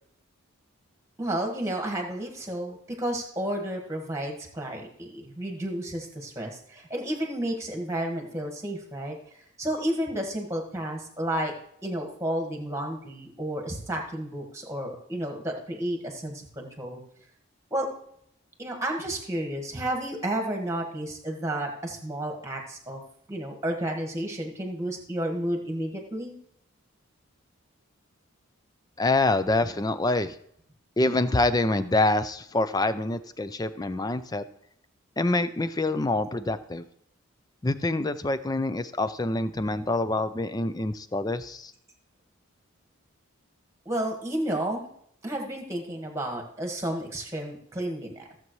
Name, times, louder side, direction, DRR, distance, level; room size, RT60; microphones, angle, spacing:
voice 1, 1.2-11.5 11.8-17.0 17.7-17.9 18.6-23.0 23.3-26.4 43.8-44.9 45.2-48.3, right 1 dB, 15° right, 1 dB, 1.6 m, -31 dB
voice 2, 29.0-30.4 31.0-34.4 35.2-36.8 37.6-41.7, left 2 dB, 15° left, 12 dB, 0.4 m, -26 dB
15.0 x 7.3 x 3.1 m, 0.71 s
head